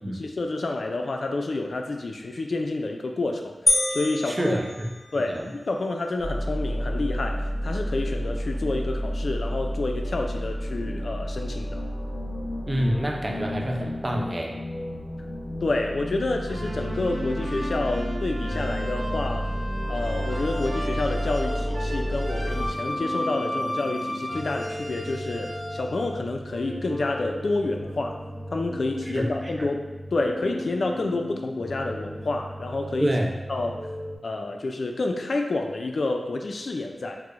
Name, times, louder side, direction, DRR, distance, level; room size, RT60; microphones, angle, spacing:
voice 1, 0.1-3.6 3.9-4.6 5.1-11.8 15.6-19.5 19.9-28.2 28.5-29.8 30.1-33.1 33.5-33.9 34.2-37.2, left 2 dB, 75° left, 3 dB, 0.3 m, -29 dB
sound 1, 3.7-5.4, left 1 dB, 20° left, 0.6 m, -26 dB
voice 2, 4.2-4.9 5.3-5.4 12.7-14.5 29.1-29.7 33.0-33.3, equal, 30° right, 0 dB, 0.5 m, -27 dB
sound 2, 6.2-22.7, equal, 55° left, 0.8 m, -31 dB
sound 3, 16.5-34.2, equal, 60° right, 0.9 m, -34 dB
4.5 x 2.0 x 2.5 m, 1.2 s
wide cardioid pair, 55°, 0 cm